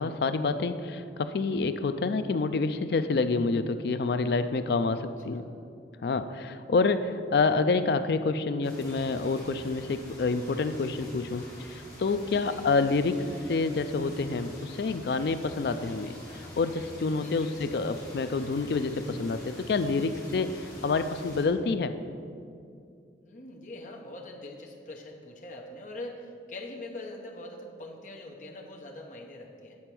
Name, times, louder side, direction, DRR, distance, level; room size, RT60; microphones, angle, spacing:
voice 1, 0.0-5.4 6.0-21.9, left 3 dB, 60° left, 11 dB, 0.4 m, -28 dB
voice 2, 4.6-5.4 12.2-12.7 17.1-17.6 23.2-29.8, left 2 dB, 45° left, 0 dB, 0.9 m, -43 dB
sound 1, 8.6-21.5, left 1 dB, 20° left, 2.1 m, -47 dB
8.6 x 4.4 x 6.0 m, 2.4 s
head